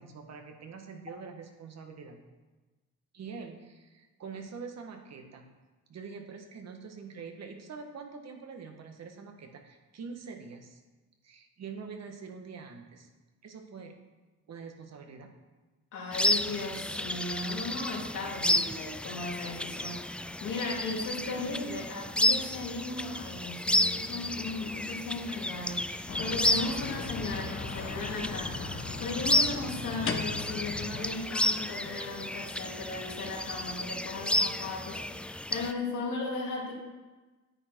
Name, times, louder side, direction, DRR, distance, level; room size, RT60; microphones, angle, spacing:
voice 1, 0.0-2.2 3.1-5.5 5.9-10.8 11.2-13.1 13.4-13.9 14.5-15.3, right 5 dB, 60° right, 4 dB, 1.6 m, -45 dB
voice 2, 15.9-36.7, left 3 dB, 80° left, -2 dB, 3.0 m, -37 dB
sound 1, 16.1-35.7, left 1 dB, 5° left, 0.4 m, -32 dB
sound 2, 26.1-31.1, left 4 dB, 45° left, 1.2 m, -38 dB
9.8 x 9.0 x 4.6 m, 1.2 s
cardioid pair, 90°, 30 cm